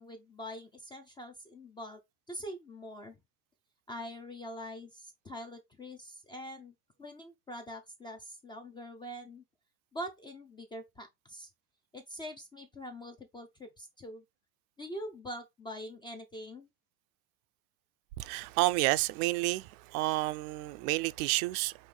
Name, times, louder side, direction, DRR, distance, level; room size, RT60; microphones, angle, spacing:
voice 1, 0.0-2.0 2.3-3.2 3.9-6.7 7.0-9.4 9.9-11.5 11.9-14.2 14.8-16.7, equal, 10° left, 0.3 m, -44 dB
voice 2, 18.2-21.9, right 19 dB, 65° right, 0.5 m, -30 dB
5.4 x 2.7 x 3.2 m
supercardioid pair, 125°, 47 cm